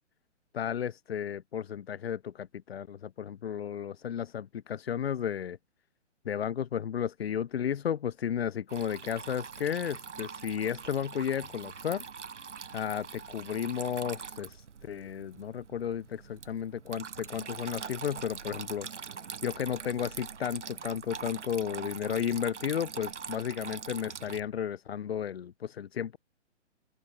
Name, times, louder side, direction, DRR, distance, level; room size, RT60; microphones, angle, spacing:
voice 1, 0.5-5.6 6.2-12.0 12.7-18.9 19.4-26.2, left 8 dB, 55° left, 1.4 m, -33 dB
Water tap faucet / Trickle dribble, 8.7-24.4, right 6 dB, 75° right, 1.7 m, -43 dB
open air
figure-of-eight pair, 135°, 36 cm